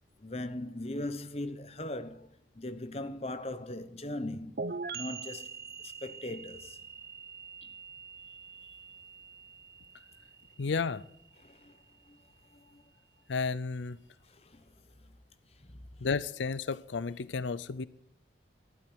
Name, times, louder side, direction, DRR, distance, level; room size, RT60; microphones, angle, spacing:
voice 1, 0.2-2.3 2.6-4.6 4.9-5.5 5.8-6.8 7.6-7.7 11.4-11.8 12.1-12.2 12.5-12.8 14.3-14.6 15.6-15.8, left 1 dB, 35° left, 1.0 m, -39 dB
sound 1, 4.6-12.1, right 4 dB, 55° right, 0.9 m, -44 dB
voice 2, 10.6-11.0 13.3-14.0 16.0-17.8, left 4 dB, 90° left, 0.6 m, -32 dB
12.0 x 11.5 x 9.0 m
head